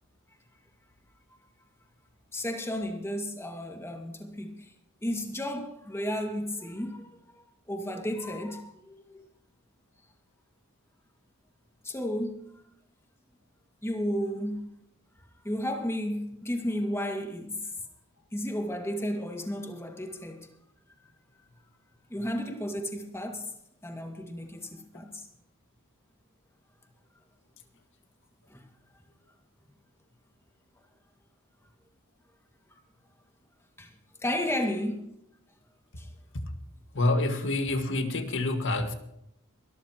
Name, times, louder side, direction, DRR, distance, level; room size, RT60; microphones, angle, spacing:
voice 1, 2.3-4.7 5.0-7.1 7.7-9.2 11.8-12.5 13.8-14.7 15.4-17.6 18.3-20.5 22.1-23.5 23.8-25.3 28.5-28.6 33.8-33.9 34.2-35.1 36.0-36.1, equal, 10° left, 2.0 m, -33 dB
voice 2, 36.9-38.9, left 2 dB, 60° left, 1.9 m, -27 dB
23.0 x 13.0 x 3.0 m
head